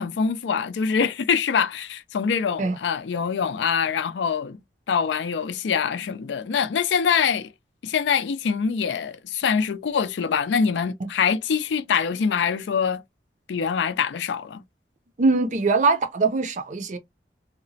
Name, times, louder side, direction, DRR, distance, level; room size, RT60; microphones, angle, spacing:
voice 1, 0.0-4.6 4.9-7.5 7.8-13.0 13.5-14.6, left 6 dB, 80° left, 0.4 m, -24 dB
voice 2, 15.2-17.0, right 3 dB, 45° right, 0.5 m, -22 dB
2.8 x 2.1 x 2.6 m
head